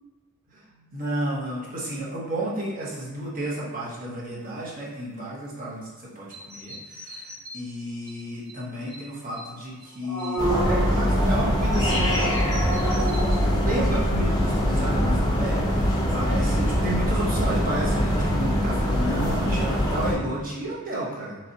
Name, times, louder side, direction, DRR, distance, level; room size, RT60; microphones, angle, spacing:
voice 1, 0.5-12.4 13.5-21.4, right 1 dB, 40° right, -6 dB, 1.0 m, -32 dB
sound 1, 6.3-7.6 8.1-8.2 8.5-8.6 8.9-9.0 9.3-9.4 9.8-13.5, right 2 dB, 85° right, 1.1 m, -30 dB
sound 2, 10.4-20.1, equal, 20° left, 0.6 m, -23 dB
4.3 x 3.1 x 2.7 m, 1.3 s
head